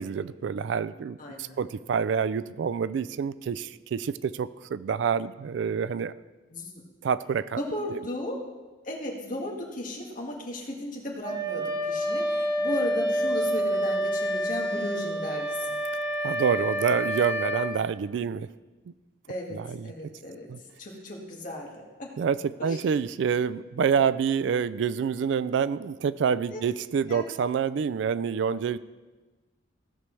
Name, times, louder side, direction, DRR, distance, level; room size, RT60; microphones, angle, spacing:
voice 1, 0.0-6.1 7.0-7.6 7.9-8.0 16.2-18.5 18.9-19.0 19.5-19.9 20.5-20.6 22.2-28.8, right 6 dB, 70° right, 17 dB, 0.3 m, -27 dB
voice 2, 1.2-1.6 6.5-6.8 7.6-8.4 8.9-15.8 19.3-19.6 19.8-20.5 20.8-22.1 22.6-22.8 26.5-26.6 27.1-27.3, left 1 dB, 45° left, -1 dB, 1.8 m, -35 dB
Wind instrument woodwind instrument, 11.2-17.8, equal, 20° right, 1.3 m, -28 dB
16.0 x 6.8 x 3.3 m, 1.2 s
head